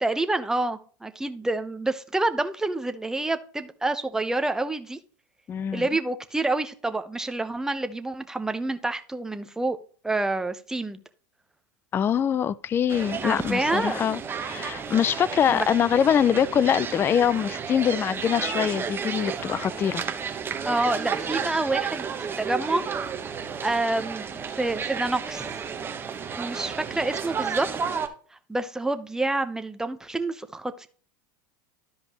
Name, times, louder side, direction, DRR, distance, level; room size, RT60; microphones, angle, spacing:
voice 1, 0.0-5.0 5.7-9.8 10.0-11.0 13.2-14.0 15.5-15.7 20.6-22.1 22.4-22.8 23.6-24.3 24.6-25.4 26.4-27.7 28.5-30.9, right 2 dB, 5° right, 0.8 m, -27 dB
voice 2, 5.5-5.9 11.9-20.0, left 8 dB, 20° left, 0.3 m, -24 dB
sound 1, 12.9-28.1, right 6 dB, 20° right, 1.1 m, -32 dB
13.0 x 5.1 x 3.0 m
supercardioid pair, 130°, 11 cm